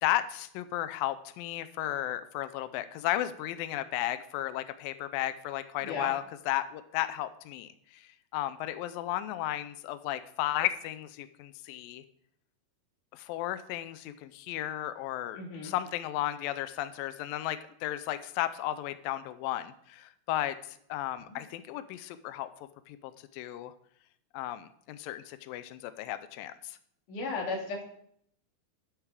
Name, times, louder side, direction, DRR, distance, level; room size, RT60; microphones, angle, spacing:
voice 1, 0.0-12.0 13.1-22.5 22.9-23.7 24.3-26.8, left 14 dB, 85° left, 12 dB, 2.0 m, -34 dB
voice 2, 5.8-6.1 15.4-15.7 21.3-21.4 27.1-27.8, left 3 dB, 55° left, 0 dB, 3.6 m, -35 dB
12.0 x 8.4 x 4.9 m, 0.68 s
omnidirectional pair, 4.7 m